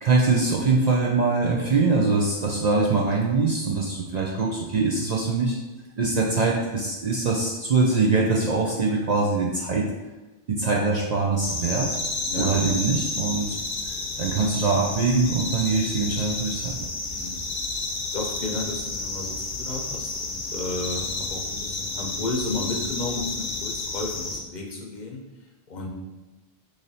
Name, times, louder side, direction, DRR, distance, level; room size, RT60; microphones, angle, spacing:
voice 1, 0.0-5.6 6.0-9.9 10.5-11.9 12.4-13.6 14.2-16.7, right 3 dB, 55° right, -2 dB, 0.5 m, -23 dB
sound 1, 11.4-24.4, left 3 dB, 85° left, 0.9 m, -31 dB
voice 2, 12.2-12.6 17.1-17.5 18.1-25.9, left 2 dB, 55° left, -1 dB, 0.6 m, -33 dB
3.2 x 2.6 x 4.0 m, 1.1 s
omnidirectional pair, 1.1 m